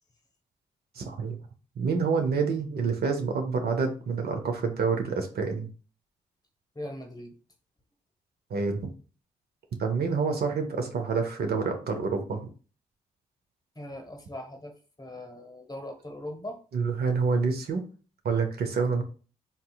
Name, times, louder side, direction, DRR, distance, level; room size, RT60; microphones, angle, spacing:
voice 1, 1.0-1.4 1.8-5.7 8.5-8.9 9.8-12.4 16.7-17.8 18.2-19.0, right 5 dB, 60° right, 4 dB, 0.7 m, -27 dB
voice 2, 6.7-7.3 13.7-16.6, left 1 dB, 20° left, 4 dB, 1.0 m, -40 dB
3.6 x 2.7 x 2.3 m, 0.37 s
hypercardioid pair, 40°, 19 cm